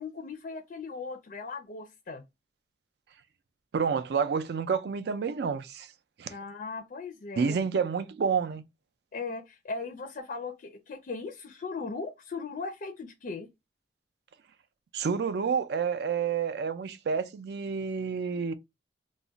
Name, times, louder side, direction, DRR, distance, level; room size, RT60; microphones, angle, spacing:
voice 1, 0.0-2.2 6.3-7.6 9.1-13.5, left 4 dB, 50° left, 0.4 m, -38 dB
voice 2, 3.7-5.9 6.2-6.3 7.4-8.6 14.9-18.5, right 6 dB, 65° right, 0.4 m, -29 dB
2.3 x 2.1 x 3.8 m
head